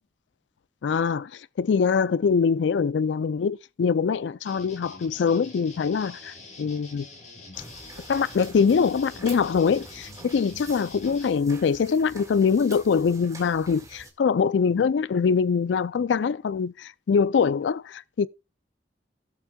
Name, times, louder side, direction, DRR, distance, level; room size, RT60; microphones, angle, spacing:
voice 1, 0.8-7.1 8.1-18.3, left 6 dB, 85° left, 0.4 m, -23 dB
sound 1, 4.4-11.3, left 2 dB, 40° left, 3.2 m, -45 dB
sound 2, 7.5-14.1, right 3 dB, 20° right, 1.8 m, -46 dB
16.5 x 7.2 x 2.3 m
head